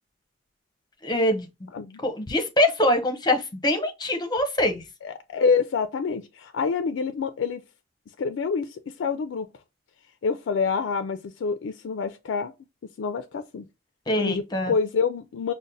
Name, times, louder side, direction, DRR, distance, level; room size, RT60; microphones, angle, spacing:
voice 1, 1.0-1.7 2.0-4.8 14.1-14.7, left 1 dB, 20° left, 0.7 m, -24 dB
voice 2, 5.0-7.6 8.2-9.5 10.2-12.5 13.0-13.7 14.2-15.5, left 5 dB, 90° left, 0.4 m, -27 dB
5.1 x 2.1 x 2.6 m
head